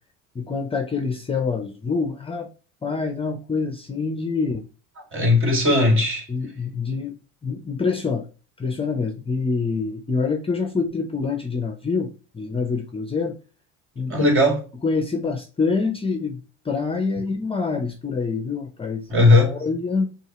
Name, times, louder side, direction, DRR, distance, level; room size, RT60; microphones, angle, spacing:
voice 1, 0.3-2.5 2.8-4.6 6.3-7.1 7.4-8.3 8.6-13.4 14.0-14.4 14.8-20.2, left 4 dB, 20° left, 0.6 m, -26 dB
voice 2, 5.1-6.2 14.1-14.6 19.1-19.5, left 2 dB, 40° right, 2.0 m, -17 dB
6.3 x 2.4 x 2.9 m
supercardioid pair, 105°, 32 cm